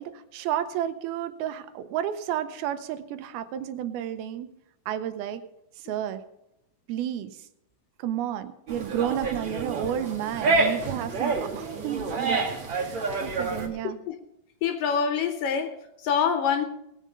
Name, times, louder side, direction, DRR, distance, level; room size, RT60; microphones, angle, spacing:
voice 1, 0.0-4.5 4.9-5.4 5.8-6.2 6.9-7.3 8.0-12.4 12.7-14.0, right 10 dB, 85° right, 2.6 m, -31 dB
sound 1, 8.7-13.7, right 3 dB, 40° right, 2.0 m, -28 dB
voice 2, 13.8-14.2 14.6-16.7, left 7 dB, 70° left, 2.4 m, -26 dB
18.5 x 7.5 x 5.3 m
omnidirectional pair, 4.4 m